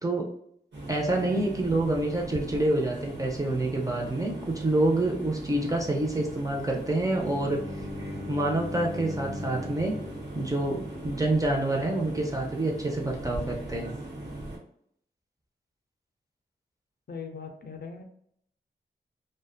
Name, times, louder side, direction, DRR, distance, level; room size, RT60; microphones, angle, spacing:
sound 1, 0.7-14.6, right 1 dB, 90° right, 1.0 m, -39 dB
voice 1, 0.9-7.6 8.3-9.9 10.3-13.9, right 2 dB, 20° right, -1 dB, 0.5 m, -27 dB
Bowed string instrument, 7.1-11.2, left 2 dB, 45° right, 1.2 m, -40 dB
voice 2, 17.1-18.0, left 5 dB, 60° left, 4 dB, 0.5 m, -39 dB
2.6 x 2.1 x 2.3 m, 0.68 s
wide cardioid pair, 75°, 18 cm